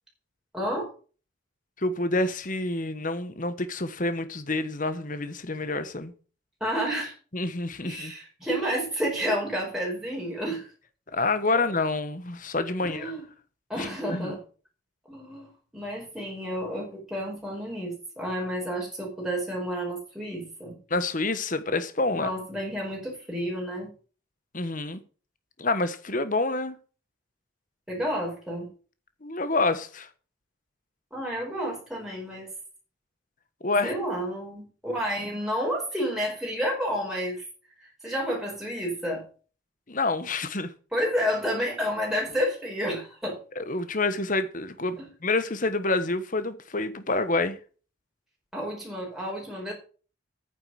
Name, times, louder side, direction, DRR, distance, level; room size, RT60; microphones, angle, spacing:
voice 1, 0.5-0.9 6.6-7.1 7.8-10.7 12.8-13.3 13.7-14.4 15.1-20.8 22.1-23.9 27.9-28.7 31.1-32.5 33.8-37.4 38.0-39.2 40.9-43.4 45.0-45.1 48.5-49.7, equal, ahead, 4.8 m, -30 dB
voice 2, 1.8-6.1 7.3-8.1 11.1-13.1 13.8-14.4 20.9-22.3 24.5-25.0 25.6-26.8 29.2-30.1 33.6-33.9 39.9-40.7 43.6-45.0 45.2-47.6, left 2 dB, 40° left, 1.3 m, -28 dB
9.5 x 7.8 x 6.4 m
head